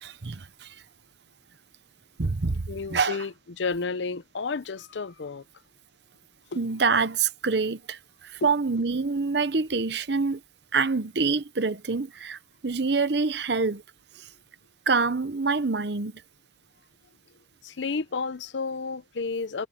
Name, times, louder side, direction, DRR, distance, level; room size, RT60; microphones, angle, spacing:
voice 1, 0.0-0.8 2.2-3.3 6.5-10.4 10.7-13.8 14.2-14.3 14.9-16.2, right 4 dB, 60° right, 0.9 m, -26 dB
voice 2, 2.7-5.4 6.5-6.6 8.4-8.5 17.6-19.7, left 4 dB, 70° left, 0.6 m, -31 dB
head